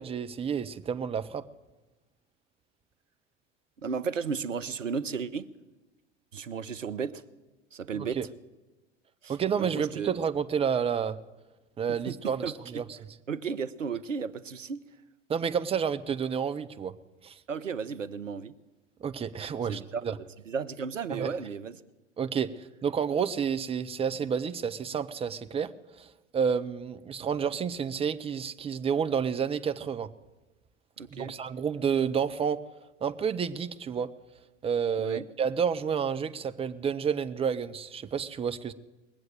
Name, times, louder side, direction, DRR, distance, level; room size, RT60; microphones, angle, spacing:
voice 1, 0.0-1.4 7.9-8.3 9.3-11.2 11.8-12.4 12.7-13.0 15.3-16.9 17.2-17.4 19.0-20.1 21.1-21.3 22.2-25.7 26.0-30.1 31.1-32.6 33.0-34.1 34.6-38.7, right 7 dB, 15° right, 12 dB, 0.6 m, -30 dB
voice 2, 3.8-5.5 6.3-7.2 7.7-8.2 9.2-10.1 11.9-12.8 13.3-14.8 17.5-18.5 19.7-20.2 20.5-21.8 31.0-31.3 35.0-35.2, right 6 dB, 85° right, 14 dB, 0.7 m, -34 dB
20.5 x 7.8 x 8.9 m, 1.1 s
figure-of-eight pair, 85°, 37 cm